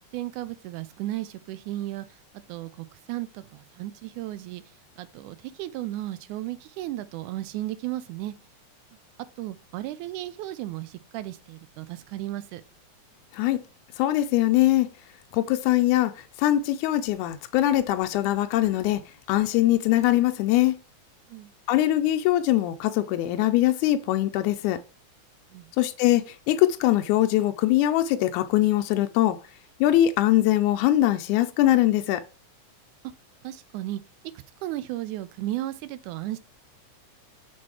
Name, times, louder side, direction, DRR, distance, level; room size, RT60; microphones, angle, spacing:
voice 1, 0.1-2.1 2.5-4.6 5.0-8.3 9.4-12.6 21.3-21.5 25.5-25.7 33.4-34.0 34.6-36.4, right 15 dB, 90° right, 2.1 m, -34 dB
voice 2, 14.0-14.9 15.3-19.0 19.3-20.8 21.7-24.8 25.8-29.4 29.8-32.2, left 14 dB, 85° left, 2.0 m, -22 dB
5.9 x 4.3 x 4.7 m
omnidirectional pair, 3.4 m